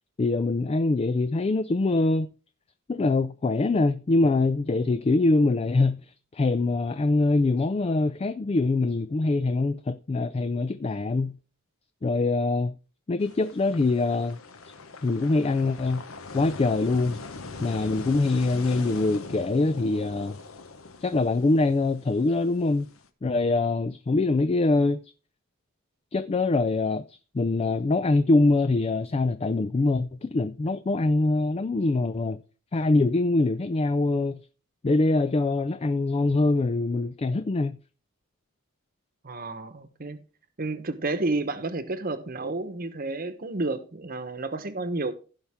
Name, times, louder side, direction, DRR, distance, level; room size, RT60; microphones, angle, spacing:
voice 1, 0.2-2.3 2.9-11.4 12.0-12.7 13.1-14.4 15.0-16.0 16.3-17.2 17.6-20.4 21.0-22.9 23.2-25.0 26.1-32.4 32.7-34.4 34.8-37.8, left 2 dB, 30° left, 0.3 m, -24 dB
sound 1, 13.2-23.1, left 3 dB, 75° left, 1.1 m, -42 dB
voice 2, 39.2-40.2 40.6-45.2, right 2 dB, 45° right, 1.0 m, -31 dB
15.5 x 5.7 x 3.5 m
head